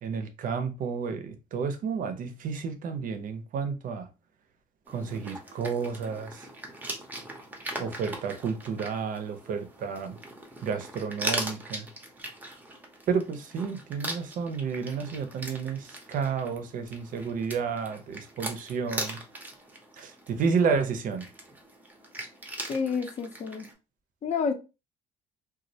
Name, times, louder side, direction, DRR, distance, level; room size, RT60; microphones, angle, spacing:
voice 1, 0.0-4.1 4.9-6.5 7.8-10.2 10.6-11.9 13.1-19.2 20.0-21.3, right 5 dB, 55° right, 0.5 m, -31 dB
sound 1, 4.9-23.7, right 1 dB, 10° right, 0.6 m, -40 dB
voice 2, 22.7-23.7 24.2-24.5, left 5 dB, 40° left, 0.6 m, -29 dB
2.2 x 2.0 x 2.7 m
cardioid pair, 110°, 17 cm